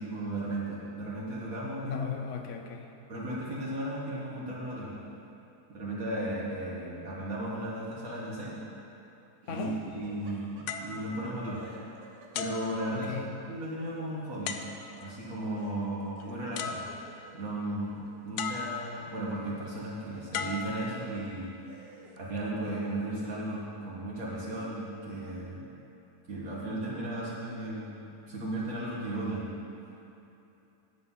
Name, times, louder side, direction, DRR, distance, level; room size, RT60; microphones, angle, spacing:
voice 1, 0.0-2.0 3.1-5.0 5.7-8.6 9.5-11.6 12.3-13.1 13.5-14.6 15.0-16.9 17.3-21.5 22.2-25.6 26.3-27.9 28.3-29.5, right 1 dB, 55° right, -7 dB, 1.9 m, -35 dB
voice 2, 1.8-2.9 9.5-9.8 12.9-13.3, left 6 dB, 60° left, 4 dB, 0.8 m, -36 dB
Laughter, 9.4-11.2 11.5-13.2 15.5-18.7 19.0-20.7 21.3-21.4 21.7-23.0, right 3 dB, 90° right, 1.7 m, -55 dB
sound 1, 10.7-11.9 12.3-13.5 14.5-15.2 16.2-16.3 16.6-17.4 18.4-19.2 20.3-21.4 22.2-22.4, left 6 dB, 75° left, 1.1 m, -38 dB
9.9 x 7.8 x 5.6 m, 2.8 s
omnidirectional pair, 1.8 m